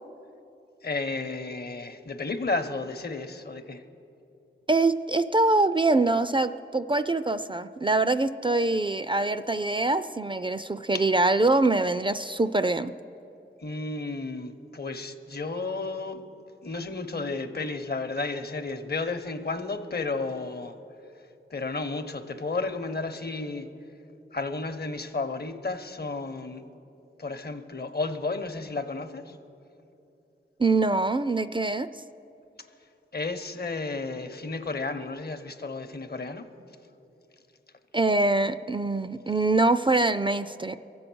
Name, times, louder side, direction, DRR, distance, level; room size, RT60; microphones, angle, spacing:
voice 1, 0.8-3.8 10.9-11.0 13.6-16.2 16.6-20.8 21.5-23.7 24.3-26.6 27.2-29.4 33.1-36.5, left 3 dB, 50° left, 8 dB, 0.9 m, -32 dB
voice 2, 4.7-12.9 30.6-31.9 37.9-40.8, right 2 dB, 25° right, 12 dB, 0.4 m, -24 dB
22.5 x 7.8 x 6.1 m, 2.8 s
cardioid pair, 50°, 21 cm